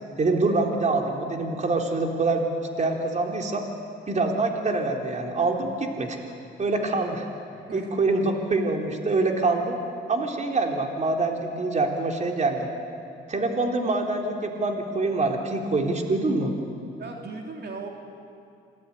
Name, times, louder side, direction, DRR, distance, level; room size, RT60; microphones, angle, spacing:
voice 1, 0.2-2.5 2.8-3.6 4.1-6.2 6.6-7.3 7.7-9.8 10.1-12.7 13.3-16.5, right 3 dB, 35° right, 2 dB, 3.5 m, -25 dB
voice 2, 7.5-7.9 17.0-17.9, right 4 dB, 55° right, 1 dB, 3.3 m, -38 dB
27.5 x 18.5 x 9.8 m, 2.5 s
cardioid pair, 90°, 20 cm